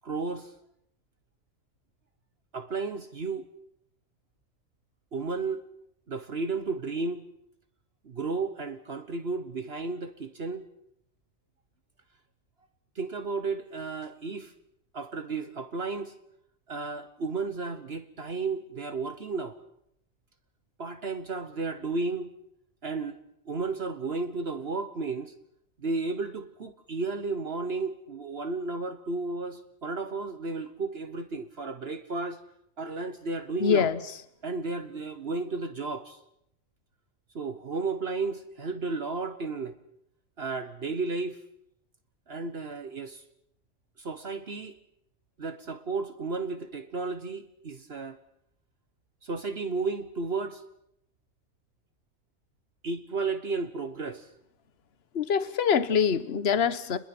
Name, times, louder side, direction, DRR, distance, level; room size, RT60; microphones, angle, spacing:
voice 1, 0.0-0.5 2.5-3.5 5.1-5.6 6.1-7.3 8.0-10.6 12.9-14.5 14.9-16.1 16.7-19.6 20.8-22.3 22.8-23.2 23.5-25.3 25.8-32.4 32.8-33.9 34.4-36.2 37.3-39.7 40.4-41.4 42.3-43.2 44.0-44.8 45.4-48.2 49.2-50.6 52.8-54.3, right 3 dB, 55° right, 9 dB, 1.4 m, -33 dB
voice 2, 33.6-34.0 55.1-57.0, left 7 dB, 55° left, 13 dB, 1.3 m, -24 dB
28.5 x 21.0 x 6.1 m, 0.75 s
omnidirectional pair, 1.3 m